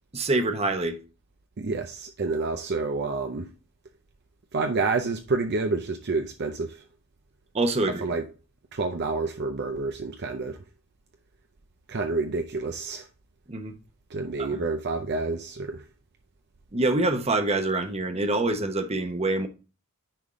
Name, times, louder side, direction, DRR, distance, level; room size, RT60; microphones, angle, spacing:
voice 1, 0.1-1.0 7.5-8.0 13.5-13.8 14.4-14.5 16.7-19.5, right 2 dB, 30° right, 0.9 m, -25 dB
voice 2, 1.6-3.5 4.5-6.8 7.8-8.3 8.7-10.6 11.9-13.1 14.1-15.9, right 3 dB, 50° right, 0.6 m, -29 dB
9.9 x 3.6 x 3.6 m
head